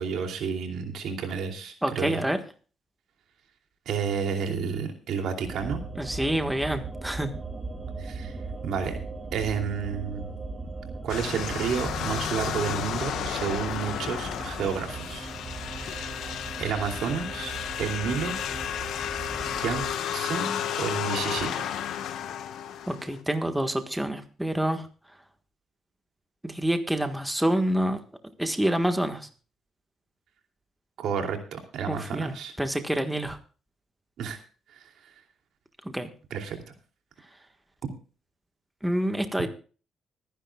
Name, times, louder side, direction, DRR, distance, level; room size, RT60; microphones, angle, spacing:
voice 1, 0.0-2.2 3.9-5.8 8.0-8.3 8.6-9.0 9.3-10.3 11.0-15.3 15.7-16.2 16.6-17.5 17.8-18.4 19.4-19.9 20.1-21.7 31.0-32.5 34.2-34.4 36.3-36.6, right 6 dB, 75° right, 3 dB, 2.7 m, -31 dB
voice 2, 1.8-2.4 5.9-7.3 22.9-24.9 26.4-28.0 28.4-29.3 31.9-32.3 32.6-33.4 35.8-36.1 38.8-39.5, right 1 dB, 5° right, 7 dB, 1.5 m, -27 dB
sound 1, 5.4-19.9, right 3 dB, 25° right, 2.3 m, -38 dB
sound 2, 11.1-23.2, left 9 dB, 80° left, 1.3 m, -33 dB
25.0 x 10.5 x 2.3 m, 0.37 s
cardioid pair, 90°, 0 cm